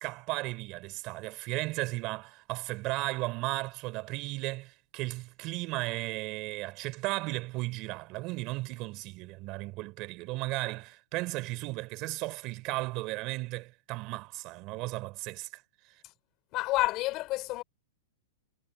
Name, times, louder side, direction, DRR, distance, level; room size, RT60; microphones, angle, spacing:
voice 1, 0.0-15.6 15.9-16.0, right 21 dB, 35° right, 3.7 m, -35 dB
voice 2, 16.5-17.6, left 19 dB, 35° left, 4.0 m, -29 dB
hypercardioid pair, 150°, 0 cm